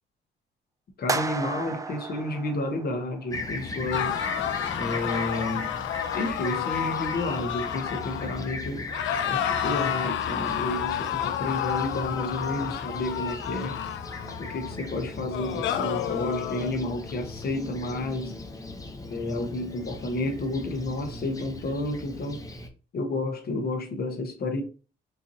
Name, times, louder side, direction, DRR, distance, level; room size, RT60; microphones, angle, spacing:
voice 1, 1.0-4.2 4.8-5.8 6.1-8.9 9.3-13.8 14.4-18.4 19.1-22.4 22.9-24.6, left 2 dB, 50° left, 1.1 m, -31 dB
sound 1, 1.1-3.3, right 3 dB, 15° right, 0.3 m, -33 dB
Fixed-wing aircraft airplane, 3.3-22.7, left 2 dB, 15° left, 0.7 m, -38 dB
sound 2, 3.9-8.6 8.9-14.7 15.3-16.7, left 10 dB, 70° left, 0.4 m, -30 dB
4.5 x 2.5 x 2.7 m
cardioid pair, 90°, 20 cm